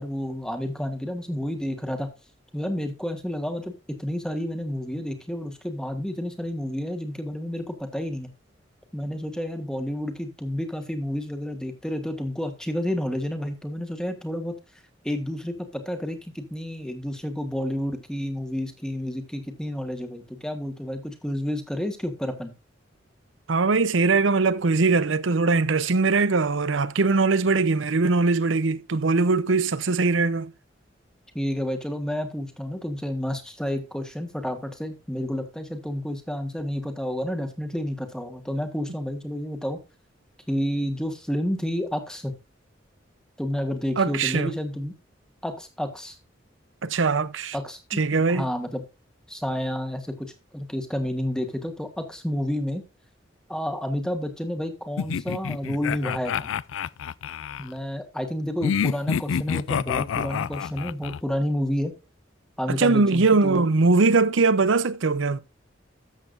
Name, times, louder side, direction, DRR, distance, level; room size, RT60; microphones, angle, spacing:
voice 1, 0.0-2.1 2.5-3.7 4.0-8.3 8.9-14.5 15.0-22.5 31.3-39.8 40.5-42.3 43.4-45.0 45.4-46.2 47.5-48.8 49.3-50.3 50.5-52.8 53.5-56.5 57.6-61.9 62.6-63.7, equal, 5° left, 1.5 m, -30 dB
voice 2, 23.5-30.5 44.0-44.5 46.8-47.5 47.9-48.5 62.7-65.4, right 3 dB, 85° right, 0.7 m, -21 dB
sound 1, 55.0-57.7 58.6-61.2, left 7 dB, 90° left, 0.4 m, -28 dB
13.0 x 7.6 x 2.6 m
head